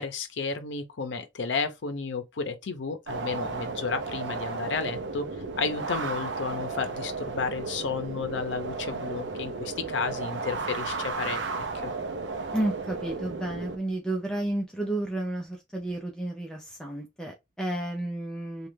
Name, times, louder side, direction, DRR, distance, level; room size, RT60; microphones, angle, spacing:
voice 1, 0.0-5.3 5.6-11.4 11.8-11.9, left 4 dB, 75° left, 0.6 m, -32 dB
sound 1, 3.1-13.8, right 4 dB, 70° right, 0.5 m, -34 dB
voice 2, 12.5-18.7, right 1 dB, 5° left, 0.5 m, -32 dB
3.1 x 2.3 x 3.2 m
head